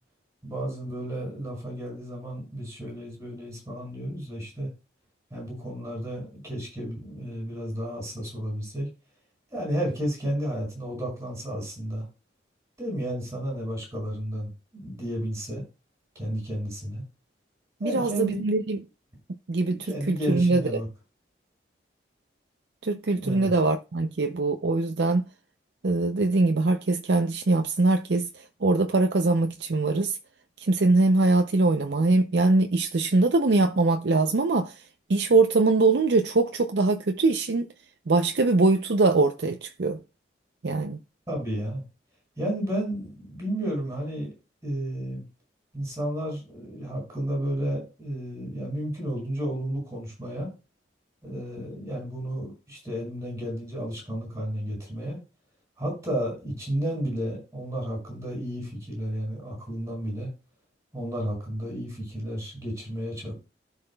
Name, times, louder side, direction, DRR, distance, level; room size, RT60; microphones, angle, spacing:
voice 1, 0.4-4.7 5.3-8.9 9.5-12.1 12.8-15.6 16.1-17.0 17.8-18.4 19.7-20.9 23.1-23.5 41.3-41.8 42.4-44.3 44.6-45.2 45.7-50.5 51.2-55.2 55.8-60.3 60.9-63.3, right 1 dB, 15° right, 6.0 m, -32 dB
voice 2, 17.8-18.8 19.5-20.8 22.8-25.3 25.8-30.2 30.6-34.8 35.1-37.7 38.1-40.0 40.6-41.0, right 3 dB, 70° right, 0.6 m, -22 dB
16.0 x 5.8 x 2.3 m
head